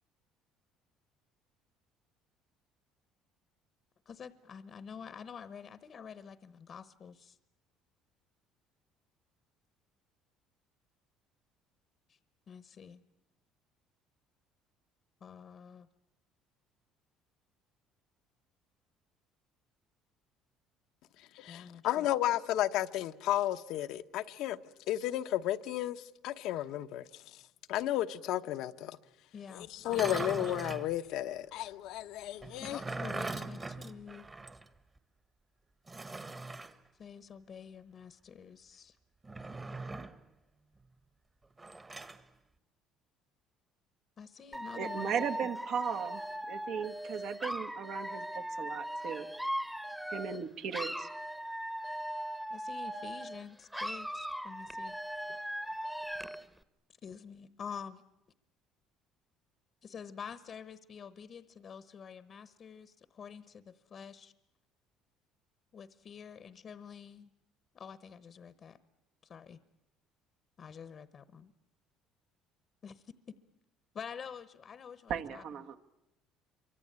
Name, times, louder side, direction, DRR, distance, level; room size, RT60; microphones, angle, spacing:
voice 1, 4.0-7.4 12.1-12.2 12.5-13.0 15.2-15.9 21.5-22.1 29.3-29.7 32.6-34.3 37.0-39.0 44.2-45.2 52.5-54.9 57.0-58.0 59.8-64.3 65.7-67.3 67.7-68.8 69.2-69.6 70.6-71.5 72.8-73.1 73.9-75.4, left 7 dB, 40° left, 1.0 m, -47 dB
voice 2, 21.3-24.6 24.9-27.2 27.7-29.0 29.5-32.8, left 13 dB, 70° left, 1.0 m, -33 dB
sound 1, 29.8-30.9 32.4-34.7 35.0-35.1 35.9-36.7 39.2-40.2 41.6-42.2, right 3 dB, 20° right, 1.4 m, -41 dB
Dog / Alarm, 44.5-50.4 50.7-53.4 53.7-56.4, equal, 5° right, 1.1 m, -39 dB
voice 3, 44.7-46.2 46.5-49.3 50.1-51.1 75.1-75.8, right 7 dB, 60° right, 1.6 m, -37 dB
27.0 x 24.0 x 8.9 m
cardioid pair, 120°, 0 cm